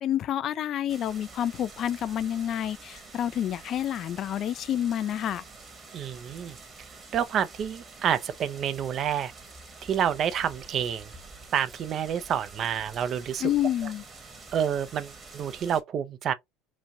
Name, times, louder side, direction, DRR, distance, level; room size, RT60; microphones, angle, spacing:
voice 1, 0.0-5.4 13.4-14.0, left 11 dB, 45° left, 0.3 m, -29 dB
sound 1, 0.9-15.8, right 3 dB, 30° right, 1.2 m, -47 dB
voice 2, 5.9-6.6 7.1-9.3 9.9-11.1 11.5-13.4 14.5-16.3, right 8 dB, 45° right, 0.5 m, -28 dB
3.0 x 2.5 x 2.6 m
hypercardioid pair, 75°, 0 cm